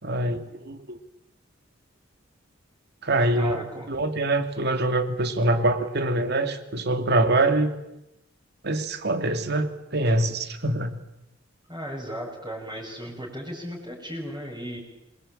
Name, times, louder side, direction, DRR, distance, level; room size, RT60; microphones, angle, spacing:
voice 1, 0.0-1.0 3.0-3.6 3.9-7.7 8.6-10.9, right 2 dB, 55° right, 8 dB, 2.7 m, -24 dB
voice 2, 3.4-3.9 11.7-14.8, equal, 20° right, -4 dB, 6.9 m, -35 dB
27.5 x 22.0 x 9.0 m, 0.88 s
head